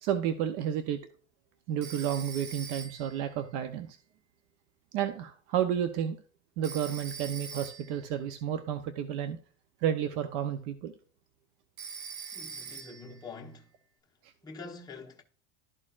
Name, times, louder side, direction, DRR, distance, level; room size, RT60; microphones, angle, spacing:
voice 1, 0.0-1.0 1.7-4.0 4.9-6.2 6.6-9.4 9.8-10.9, right 9 dB, 65° right, 0.7 m, -31 dB
Telephone, 1.8-3.2 6.6-8.0 11.8-13.2, right 6 dB, 85° right, 1.1 m, -43 dB
voice 2, 12.3-13.7 14.4-15.2, left 4 dB, 15° left, 1.1 m, -45 dB
12.5 x 4.3 x 2.4 m
supercardioid pair, 140°, 29 cm